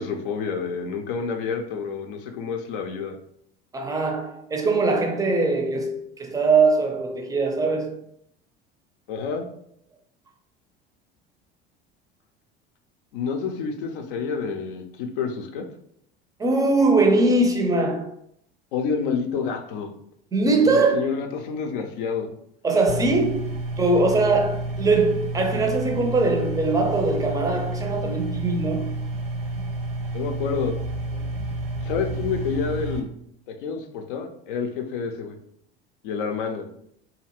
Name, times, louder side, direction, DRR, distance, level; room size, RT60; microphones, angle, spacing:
voice 1, 0.0-3.2 9.1-9.5 13.1-15.6 18.7-19.9 20.6-22.3 30.1-30.7 31.8-33.1 33.5-35.4 36.0-36.7, left 5 dB, 60° left, 0.5 m, -28 dB
voice 2, 3.7-8.0 16.4-18.1 20.3-21.1 22.6-23.5 23.8-29.0, right 3 dB, 10° right, 0.5 m, -21 dB
sound 1, 22.9-33.0, right 2 dB, 70° right, 0.7 m, -30 dB
2.7 x 2.4 x 2.9 m
figure-of-eight pair, 70°, 30 cm